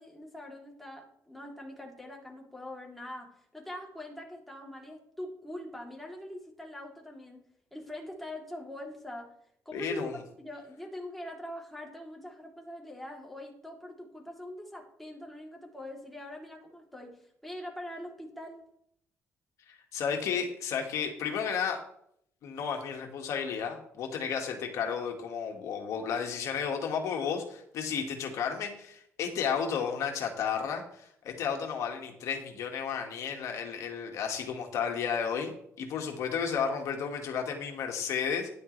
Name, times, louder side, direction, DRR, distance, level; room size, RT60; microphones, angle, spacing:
voice 1, 0.0-7.4 7.7-9.3 9.6-18.6, left 1 dB, 5° left, -1 dB, 3.1 m, -43 dB
voice 2, 9.7-10.2 19.7-21.8 22.4-38.5, left 7 dB, 75° left, 2 dB, 1.9 m, -33 dB
12.0 x 10.5 x 3.3 m, 0.70 s
cardioid pair, 90°, 5 cm